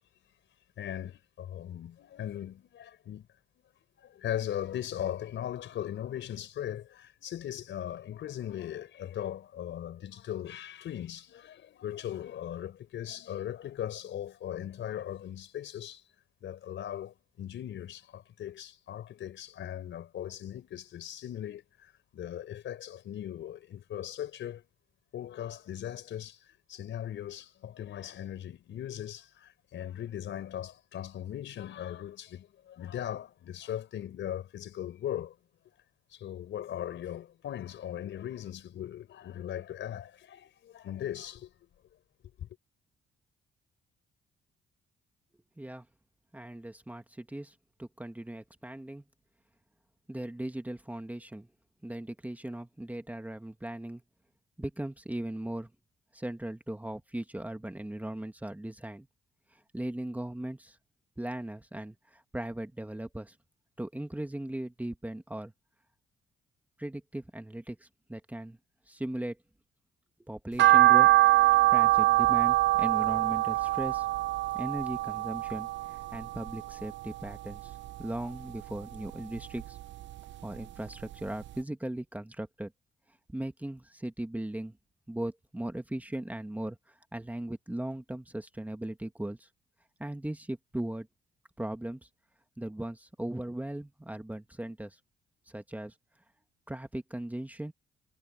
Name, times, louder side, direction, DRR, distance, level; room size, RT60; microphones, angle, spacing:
voice 1, 0.8-3.3 4.0-16.0 16.4-24.6 25.1-35.4 36.1-41.7 42.4-42.5, left 11 dB, 70° left, 4.6 m, -39 dB
voice 2, 46.3-49.0 50.1-51.5 51.8-54.0 54.6-55.7 56.1-59.1 59.5-60.8 61.2-63.4 63.8-65.5 66.8-68.6 68.9-69.4 70.2-71.1 71.4-74.1 74.5-79.8 80.4-82.7 83.3-84.8 85.1-89.5 90.0-91.1 91.6-92.1 92.6-95.0 95.5-95.9 96.7-97.7, right 1 dB, 10° right, 1.8 m, -38 dB
sound 1, 70.6-76.9 77.3-78.4 78.8-80.2 80.6-80.7 81.1-81.2 81.5-81.6, right 16 dB, 65° right, 0.7 m, -24 dB
cardioid pair, 90°, 20 cm